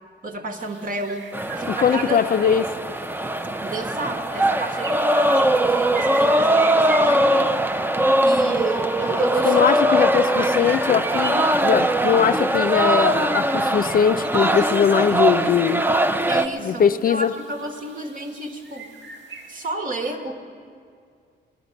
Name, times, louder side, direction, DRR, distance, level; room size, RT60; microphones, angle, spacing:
voice 1, 0.2-2.2 3.6-7.4 8.2-10.8 16.3-18.9 19.5-20.3, right 2 dB, 45° right, 5 dB, 1.4 m, -31 dB
sound 1, 0.6-19.7, right 4 dB, 80° right, 1.6 m, -41 dB
sound 2, 1.3-16.5, right 1 dB, 10° right, 0.5 m, -21 dB
voice 2, 1.7-2.7 9.4-15.8 16.6-17.3, left 7 dB, 50° left, 10 dB, 0.4 m, -20 dB
19.0 x 12.0 x 5.2 m, 2.2 s
cardioid pair, 90°, 19 cm